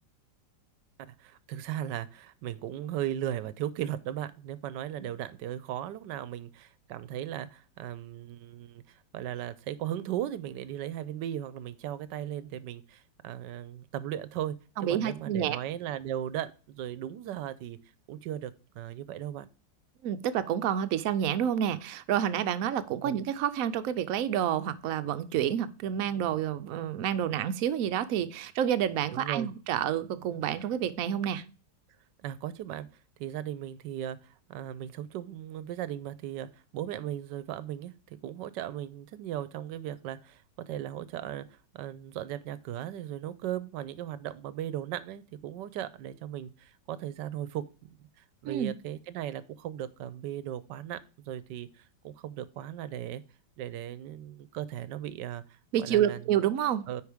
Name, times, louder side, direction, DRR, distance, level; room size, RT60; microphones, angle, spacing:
voice 1, 1.0-17.8 18.1-19.5 23.0-23.2 29.1-29.5 32.2-32.9 33.2-48.0 48.4-53.2 53.6-56.2 56.9-57.0, right 11 dB, 80° right, 16 dB, 1.3 m, -37 dB
voice 2, 14.8-15.6 20.0-31.4 48.4-48.7 55.7-56.9, right 10 dB, 65° right, 11 dB, 0.9 m, -29 dB
9.3 x 5.2 x 3.5 m, 0.36 s
omnidirectional pair, 1.9 m